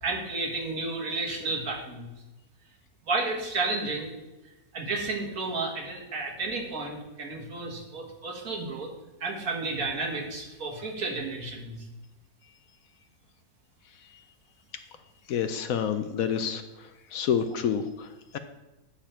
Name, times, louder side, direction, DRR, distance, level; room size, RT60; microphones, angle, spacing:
voice 1, 0.0-2.1 3.1-4.1 4.7-8.9 9.2-11.8, right 3 dB, 65° right, -1 dB, 2.0 m, -32 dB
voice 2, 15.3-18.4, left 8 dB, 70° left, 9 dB, 1.0 m, -29 dB
8.7 x 6.9 x 4.4 m, 1.1 s
omnidirectional pair, 1.7 m